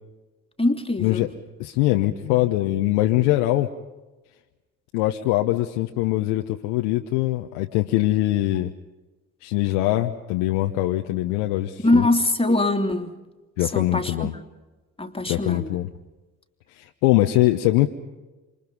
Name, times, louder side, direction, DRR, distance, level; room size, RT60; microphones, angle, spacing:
voice 1, 0.6-1.3 11.8-13.1 13.6-14.3 15.0-15.8, left 2 dB, 15° left, 5 dB, 2.9 m, -22 dB
voice 2, 1.6-3.7 4.9-8.7 9.4-12.1 13.6-14.3 15.3-15.9 16.8-17.9, left 16 dB, 80° left, 4 dB, 1.1 m, -22 dB
28.0 x 26.0 x 5.4 m, 1.1 s
hypercardioid pair, 50°, 40 cm